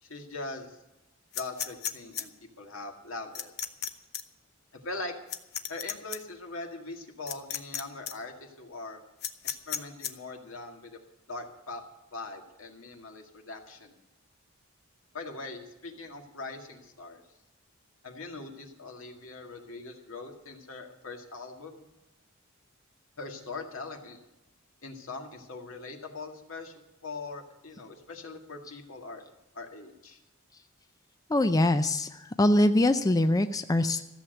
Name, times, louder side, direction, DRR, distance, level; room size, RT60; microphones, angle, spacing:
voice 1, 0.0-0.8 1.3-2.3 2.6-3.5 4.7-5.1 5.7-9.0 9.4-11.0 11.3-11.8 12.1-14.0 15.1-17.2 18.0-21.8 23.2-24.2 24.8-26.7 27.0-29.2 29.5-30.2, left 3 dB, 85° left, 3 dB, 2.0 m, -41 dB
sound 1, 1.3-2.2 3.3-3.9 4.1-4.2 5.3-6.2 7.3-7.8 8.1-8.2 9.2-10.1, left 9 dB, 55° left, 0.9 m, -33 dB
voice 2, 31.3-32.1 32.4-34.0, left 1 dB, 15° left, 9 dB, 0.4 m, -23 dB
14.5 x 7.3 x 9.1 m, 0.99 s
head